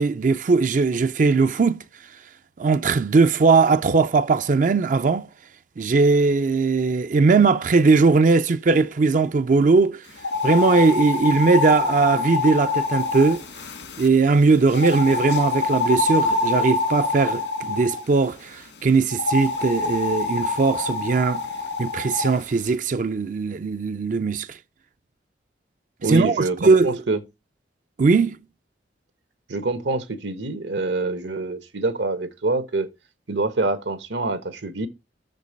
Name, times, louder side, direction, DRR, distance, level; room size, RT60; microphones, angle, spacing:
voice 1, 0.0-1.8 2.6-5.3 5.8-10.0 10.4-13.4 14.0-21.5 21.8-24.6 26.1-27.0 28.0-28.4, right 4 dB, 45° right, 0.4 m, -19 dB
sound 1, 10.2-14.1 14.7-18.0 19.1-22.3, left 3 dB, 80° left, 2.2 m, -25 dB
voice 2, 26.0-27.2 29.5-32.9 33.3-34.9, right 2 dB, 80° right, 1.2 m, -26 dB
6.6 x 5.2 x 5.2 m
head